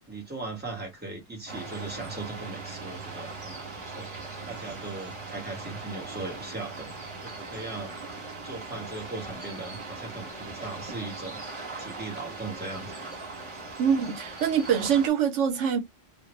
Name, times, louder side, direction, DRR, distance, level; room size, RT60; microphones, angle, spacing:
voice 1, 0.1-6.9 7.2-7.9 8.4-11.4 11.8-12.9, right 3 dB, 10° right, 1.2 m, -38 dB
sound 1, 1.5-15.1, right 3 dB, 25° right, 1.4 m, -40 dB
voice 2, 13.8-15.8, right 7 dB, 80° right, 1.0 m, -24 dB
2.6 x 2.4 x 3.0 m
omnidirectional pair, 1.2 m